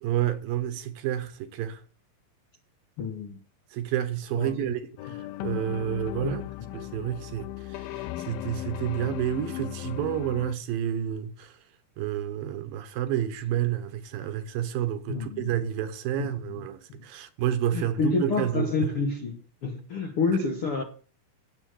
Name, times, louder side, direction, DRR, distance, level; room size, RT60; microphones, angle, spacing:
voice 1, 0.0-1.8 3.7-4.8 5.1-6.4 6.7-11.5 12.0-18.7, right 11 dB, 75° right, 2.7 m, -30 dB
voice 2, 3.0-3.4 4.3-4.7 6.2-6.7 15.1-15.5 16.2-16.7 16.9-17.0 17.7-20.8, left 4 dB, 55° left, 1.6 m, -29 dB
sound 1, 5.0-10.5, left 14 dB, 80° left, 2.5 m, -36 dB
12.5 x 9.0 x 6.4 m
omnidirectional pair, 4.4 m